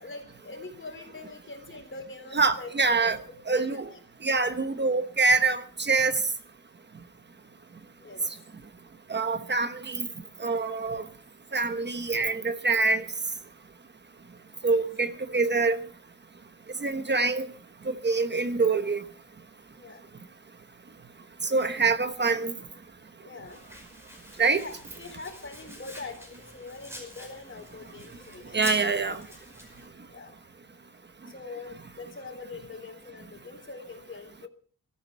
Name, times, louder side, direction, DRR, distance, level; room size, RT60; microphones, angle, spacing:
voice 1, 0.0-3.2 3.5-4.0 8.0-8.3 14.6-14.9 19.7-20.0 21.2-21.3 23.2-23.6 24.4-28.9 30.1-30.3 31.3-34.5, left 3 dB, 35° left, 3.8 m, -43 dB
voice 2, 2.3-3.2 3.5-3.9 4.2-6.2 9.1-10.1 10.4-11.0 11.5-13.0 14.6-15.8 16.8-17.5 17.8-19.0 21.4-22.5 24.4-24.6 28.5-29.2, right 4 dB, 35° right, 1.0 m, -25 dB
Domestic sounds home sounds, 23.5-29.9, left 1 dB, 10° right, 5.3 m, -46 dB
23.0 x 13.5 x 4.5 m
wide cardioid pair, 170°, 33 cm